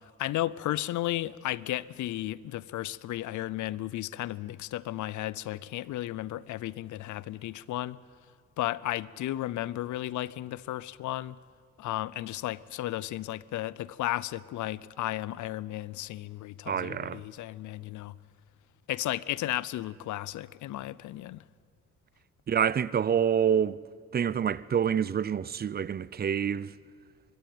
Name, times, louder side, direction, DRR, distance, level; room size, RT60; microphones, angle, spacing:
voice 1, 0.2-8.0 8.6-11.4 11.8-18.2 18.9-21.4, left 15 dB, 75° left, 0.6 m, -34 dB
voice 2, 16.7-17.2 22.5-23.8 24.1-26.7, right 8 dB, 30° right, 0.5 m, -27 dB
24.0 x 12.5 x 9.4 m
cardioid pair, 90°, 30 cm